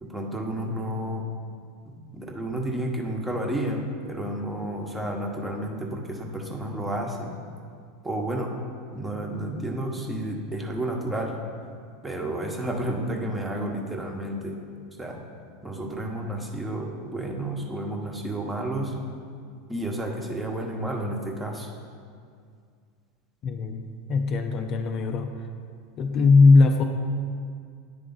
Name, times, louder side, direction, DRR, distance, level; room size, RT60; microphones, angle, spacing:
voice 1, 0.0-1.2 1.9-7.3 8.0-8.5 8.9-11.3 12.0-14.6 15.0-15.2 15.6-18.9 19.7-21.7, right 1 dB, 10° right, 1 dB, 1.0 m, -31 dB
voice 2, 23.4-25.3 26.0-26.8, left 3 dB, 45° left, 5 dB, 0.4 m, -19 dB
9.5 x 3.3 x 3.9 m, 2.2 s
hypercardioid pair, 95°, 0 cm